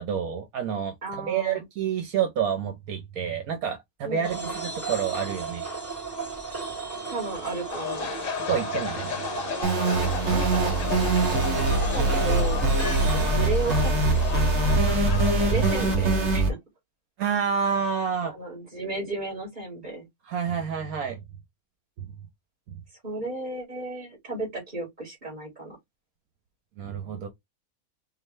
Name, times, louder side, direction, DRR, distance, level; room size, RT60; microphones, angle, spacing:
voice 1, 0.0-5.7 8.5-9.1 14.5-14.6 17.2-18.3 20.3-21.2 22.0-22.1 26.8-27.3, right 7 dB, 75° right, 1.2 m, -28 dB
voice 2, 1.0-1.6 4.0-4.5 7.1-8.1 10.3-10.8 11.6-11.7 11.9-12.6 13.3-14.2 15.4-16.6 18.2-20.1 23.0-25.8, right 2 dB, 30° right, 2.7 m, -34 dB
sound 1, 4.2-14.3, right 4 dB, 10° right, 1.8 m, -34 dB
sound 2, 7.7-16.0, left 8 dB, 65° left, 1.2 m, -34 dB
sound 3, 9.6-16.5, right 2 dB, 50° right, 1.5 m, -23 dB
4.7 x 2.6 x 3.2 m
omnidirectional pair, 1.6 m